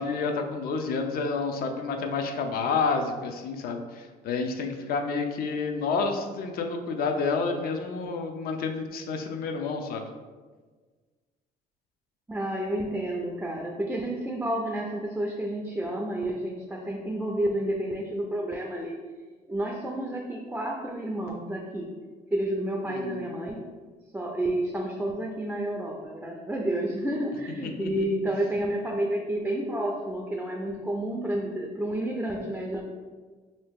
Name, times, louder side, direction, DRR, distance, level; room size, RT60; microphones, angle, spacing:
voice 1, 0.0-10.1 22.9-23.3 27.6-28.0, left 4 dB, 60° left, 5 dB, 0.5 m, -29 dB
voice 2, 12.3-19.0 19.5-21.9 22.3-23.6 24.1-32.8, right 1 dB, 5° right, 0 dB, 0.3 m, -30 dB
2.9 x 2.7 x 3.5 m, 1.4 s
cardioid pair, 110°, 17 cm